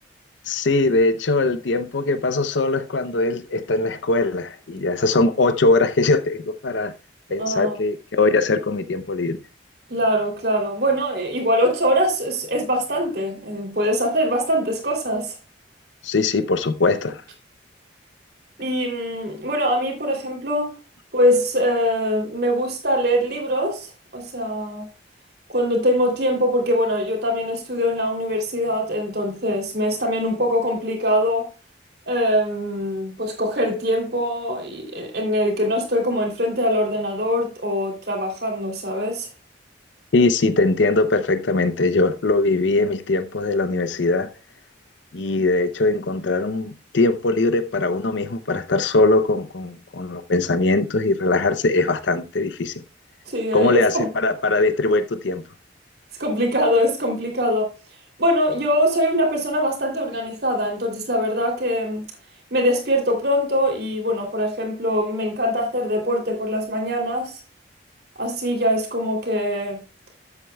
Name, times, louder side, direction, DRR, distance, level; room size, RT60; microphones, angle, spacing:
voice 1, 0.5-6.9 7.3-9.4 16.0-17.2 40.1-44.3 45.1-52.7 53.5-55.4, left 3 dB, 75° left, 0.6 m, -21 dB
voice 2, 7.4-7.8 9.9-15.3 18.6-20.7 21.1-24.9 25.5-31.5 32.1-39.3 53.3-54.1 56.2-57.7 58.2-62.0 62.5-67.4 68.2-69.8, equal, 55° right, 2.9 m, -23 dB
12.5 x 8.0 x 2.2 m
head